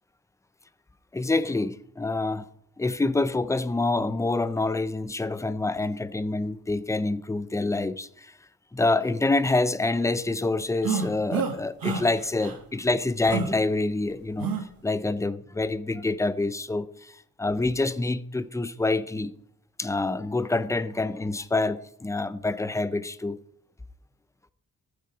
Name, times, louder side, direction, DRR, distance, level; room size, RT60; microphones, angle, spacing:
voice 1, 1.1-2.5 2.8-8.3 8.7-14.5 14.8-17.1 17.4-19.3 19.8-23.4, left 2 dB, 10° left, 0.4 m, -26 dB
sound 1, 10.8-11.5 11.8-12.0 12.4-12.6 13.3-13.5 14.4-14.6, right 5 dB, 80° right, 1.5 m, -27 dB
14.0 x 6.7 x 4.8 m
wide cardioid pair, 150°, 34 cm